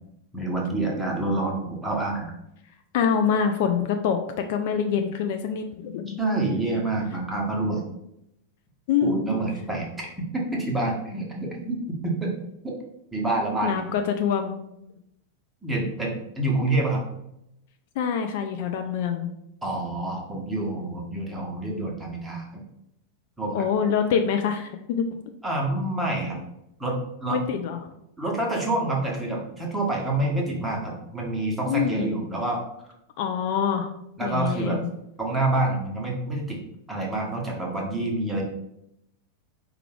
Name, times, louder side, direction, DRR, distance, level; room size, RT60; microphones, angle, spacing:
voice 1, 0.3-2.3 6.2-7.8 9.0-12.3 12.6-12.7 13.1-13.9 15.6-17.0 19.6-22.6 23.4-23.7 25.4-26.4 26.8-27.4 28.2-32.6 34.2-34.8 35.2-36.6 36.9-38.4, right 2 dB, 10° right, -2 dB, 1.0 m, -27 dB
voice 2, 2.9-4.2 4.5-6.2 8.9-9.2 13.6-14.6 18.0-19.3 23.5-25.2 27.3-27.8 31.7-32.1 33.2-33.9 34.2-34.9, left 7 dB, 50° left, 6 dB, 0.3 m, -25 dB
4.5 x 2.3 x 3.3 m, 0.81 s
figure-of-eight pair, 90°, 0 cm